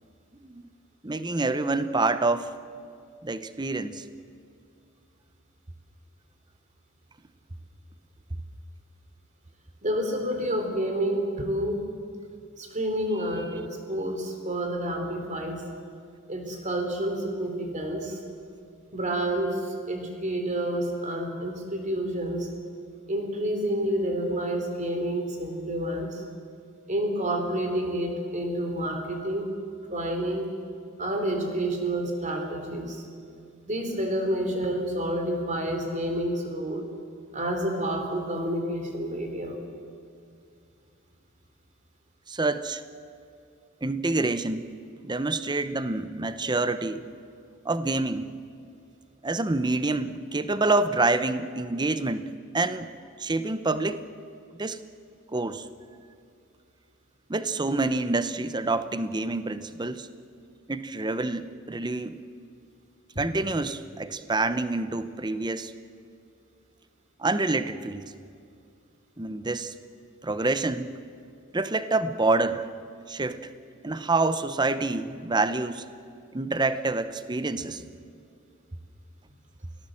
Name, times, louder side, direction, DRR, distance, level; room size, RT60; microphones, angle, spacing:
voice 1, 1.0-2.5 3.2-4.1 42.3-42.8 43.8-44.7 45.0-47.1 47.6-48.3 49.2-52.2 52.5-52.9 53.2-54.0 54.6-54.8 55.3-55.7 57.3-60.1 60.7-62.2 63.2-65.7 67.2-68.0 69.2-69.7 70.2-71.0 71.5-72.7 73.1-73.4 73.8-75.8 76.3-77.8, right 3 dB, 20° right, 12 dB, 0.7 m, -27 dB
voice 2, 9.8-11.8 12.6-15.6 16.3-18.2 18.9-22.5 23.1-26.2 26.9-29.5 29.9-30.5 31.0-33.0 33.7-36.8 37.3-39.6 63.2-63.3, right 1 dB, 35° right, 4 dB, 3.5 m, -29 dB
28.5 x 18.0 x 7.6 m, 2.4 s
head